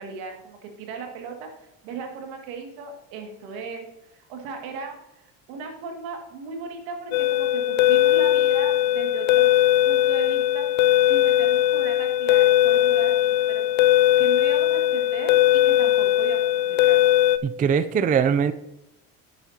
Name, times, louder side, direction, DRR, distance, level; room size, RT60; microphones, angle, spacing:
voice 1, 0.0-1.5 1.8-9.5 9.8-10.7 11.1-17.0, right 5 dB, 80° right, 3 dB, 2.2 m, -37 dB
sound 1, 7.1-17.4, left 14 dB, 80° left, 0.6 m, -19 dB
voice 2, 17.4-18.5, right 7 dB, 25° right, 13 dB, 0.4 m, -21 dB
11.0 x 9.0 x 2.8 m, 0.87 s
supercardioid pair, 100°, 36 cm